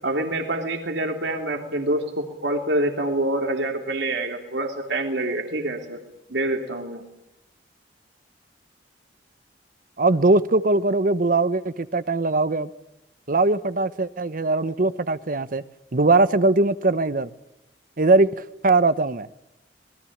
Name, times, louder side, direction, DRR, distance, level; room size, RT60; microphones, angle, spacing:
voice 1, 0.0-6.0 6.3-7.0, right 1 dB, 85° right, 3.2 m, -26 dB
voice 2, 10.0-12.7 13.3-15.6 15.9-17.3 18.0-18.3 18.6-19.3, right 2 dB, 50° right, 1.0 m, -20 dB
26.5 x 20.5 x 8.7 m
head